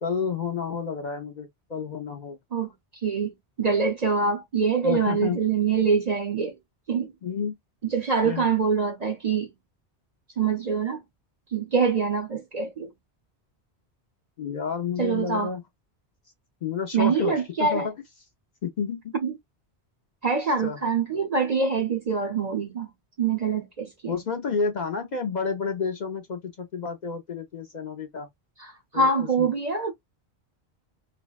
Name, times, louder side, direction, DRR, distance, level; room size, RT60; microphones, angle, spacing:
voice 1, 0.0-2.4 4.8-5.4 7.2-7.6 8.2-8.5 14.4-15.6 16.6-17.9 18.6-19.1 20.6-20.8 24.1-28.3 28.9-29.5, left 5 dB, 50° left, 0.6 m, -30 dB
voice 2, 3.0-6.5 6.9-7.1 7.9-9.5 10.4-11.0 11.5-12.9 15.0-15.5 16.9-17.9 19.2-19.3 20.2-22.9 23.2-24.1 28.6-28.7 28.9-29.9, right 5 dB, 50° right, 0.6 m, -24 dB
3.3 x 2.1 x 2.3 m
omnidirectional pair, 1.1 m